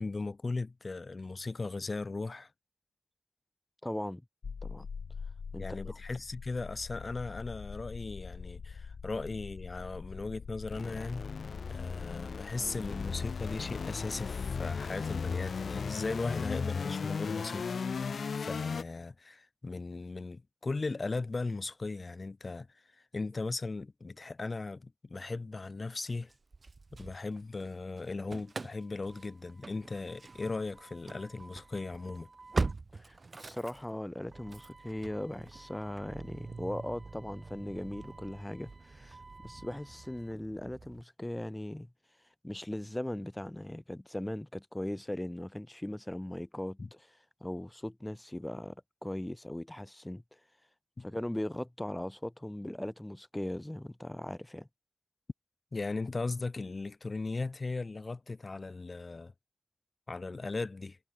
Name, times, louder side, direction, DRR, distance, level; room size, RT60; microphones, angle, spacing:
voice 1, 0.0-2.5 5.6-11.3 11.7-17.8 18.3-22.7 23.1-26.3 26.9-32.3 46.8-46.9 51.0-51.1 55.7-59.3 60.1-61.0, left 3 dB, 40° left, 1.3 m, -37 dB
voice 2, 3.8-4.2 4.6-4.9 5.5-6.0 32.9-39.2 39.4-41.9 42.4-47.0 47.4-50.2 51.0-54.7, left 1 dB, 10° left, 2.4 m, -39 dB
sound 1, 4.4-18.8, left 5 dB, 75° left, 3.7 m, -38 dB
Engine starting / Slam, 26.3-27.7 28.0-41.0, right 3 dB, 45° right, 2.6 m, -43 dB
wide cardioid pair, 95°, 0 cm